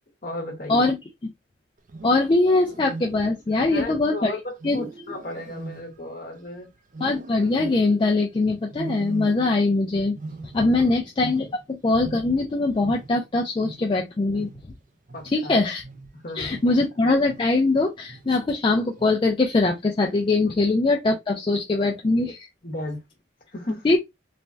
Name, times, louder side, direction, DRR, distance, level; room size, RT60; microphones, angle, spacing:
voice 1, 0.2-0.9 3.6-6.7 10.6-10.9 15.1-15.6 16.1-16.7 20.4-20.5 22.6-23.1 23.5-23.9, left 1 dB, 45° left, 0.9 m, -35 dB
Wild animals, 1.8-3.5 4.6-6.5 6.9-8.1 8.7-9.8 10.0-12.5 12.8-17.7 18.1-18.5 19.0-19.4 20.1-20.6, right 2 dB, 40° right, 0.4 m, -41 dB
voice 2, 2.0-4.9 7.0-10.2 10.4-14.5 15.3-15.8 16.4-22.5 23.8-24.0, left 2 dB, 25° left, 0.3 m, -22 dB
3.2 x 2.2 x 2.5 m
head